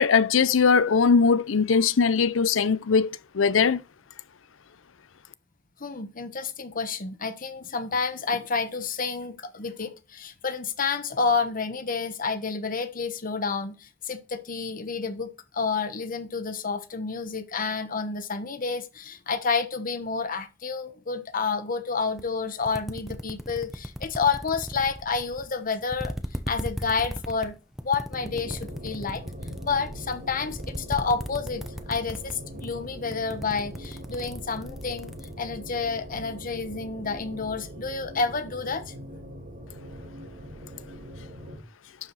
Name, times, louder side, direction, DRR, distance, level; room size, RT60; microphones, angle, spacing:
voice 1, 0.0-3.8, left 5 dB, 90° left, 0.6 m, -20 dB
voice 2, 5.8-26.1 26.5-27.5 27.8-29.2 29.6-38.9, left 4 dB, 45° left, 1.1 m, -29 dB
sound 1, 22.2-22.3 22.6-25.5 25.9-32.3 32.6-32.9 33.1-35.3, equal, ahead, 0.9 m, -36 dB
sound 2, 28.1-41.6, equal, 60° right, 5.0 m, -42 dB
11.5 x 4.8 x 4.1 m
head